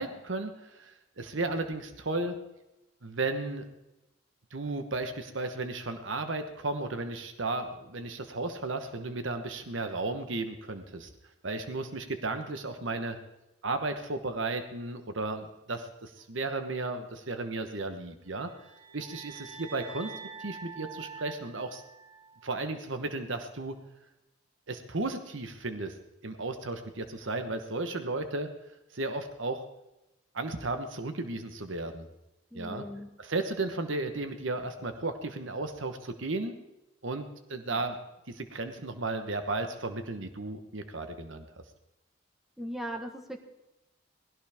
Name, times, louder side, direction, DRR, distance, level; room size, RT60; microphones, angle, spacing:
voice 1, 0.0-2.4 3.0-3.6 4.5-11.1 11.4-13.2 13.6-18.5 18.9-20.1 20.4-21.8 22.4-23.8 24.7-25.9 26.2-28.5 28.9-29.6 30.3-32.1 32.5-32.8 33.2-36.5 37.0-38.0 38.3-41.5, right 2 dB, 70° right, 8 dB, 1.1 m, -34 dB
sound 1, 18.3-22.6, right 5 dB, 30° right, 1.8 m, -46 dB
voice 2, 32.5-33.1 37.7-37.8 42.6-43.4, equal, ahead, 4 dB, 1.3 m, -38 dB
19.5 x 16.5 x 3.6 m, 0.95 s
head